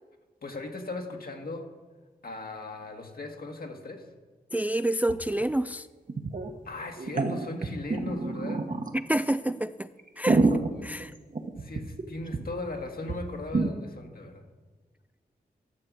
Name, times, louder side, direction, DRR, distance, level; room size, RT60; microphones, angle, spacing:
voice 1, 0.4-1.7 2.2-4.1 6.6-8.7 10.7-10.9 11.6-14.4, left 2 dB, 60° left, 1.7 m, -38 dB
voice 2, 4.5-5.9 8.9-9.9 10.2-11.1, right 1 dB, 10° right, 0.3 m, -28 dB
sound 1, 5.1-5.2 5.4-5.5 6.1-6.5 7.0-9.0 9.5-9.6 10.0-12.0 12.3-12.4 12.7-12.8 13.1-13.2 13.5-13.7, right 3 dB, 50° right, 1.2 m, -27 dB
12.0 x 6.9 x 6.2 m
cardioid pair, 45°, 17 cm